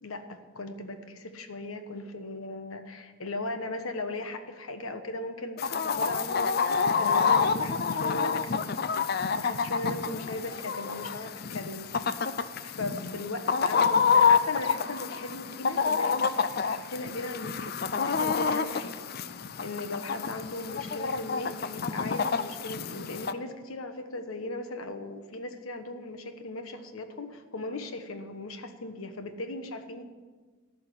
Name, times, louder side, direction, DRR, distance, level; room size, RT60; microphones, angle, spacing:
voice 1, 0.0-8.7 9.3-11.9 12.6-18.9 19.6-30.0, left 2 dB, 80° left, 8 dB, 1.2 m, -38 dB
Chicken rooster, 5.6-23.3, left 5 dB, 45° left, 0.5 m, -28 dB
14.5 x 5.8 x 9.9 m, 1.4 s
head